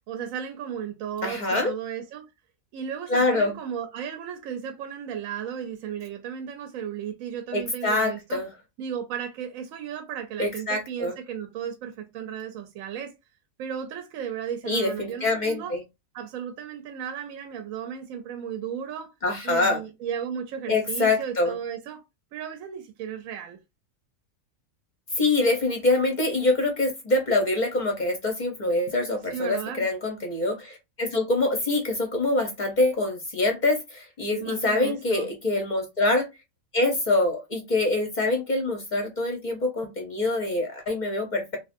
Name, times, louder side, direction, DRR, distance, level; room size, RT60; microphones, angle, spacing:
voice 1, 0.1-2.3 2.7-8.4 8.8-13.1 13.6-15.7 16.1-19.1 19.4-22.0 22.3-23.6 29.3-29.9 34.3-35.3, right 8 dB, 85° right, 1.0 m, -35 dB
voice 2, 1.2-1.7 3.1-3.5 7.5-8.5 10.4-11.1 14.6-15.8 19.2-19.8 20.7-21.5 25.2-36.3 36.7-41.6, left 2 dB, 45° left, 0.6 m, -25 dB
2.9 x 2.5 x 2.5 m
omnidirectional pair, 1.4 m